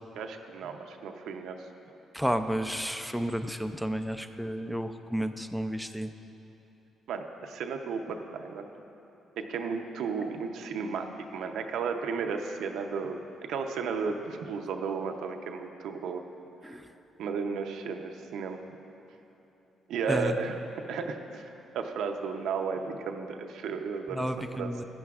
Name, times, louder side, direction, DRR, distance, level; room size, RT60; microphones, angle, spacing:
voice 1, 0.2-1.6 7.1-8.7 9.4-16.2 17.2-18.6 19.9-20.6 20.9-24.7, right 5 dB, 80° right, 5 dB, 0.6 m, -34 dB
voice 2, 2.1-6.1 16.6-16.8 20.1-20.3 24.1-24.8, equal, ahead, 8 dB, 0.4 m, -31 dB
15.0 x 10.0 x 2.4 m, 2.9 s
cardioid pair, 90°, 0 cm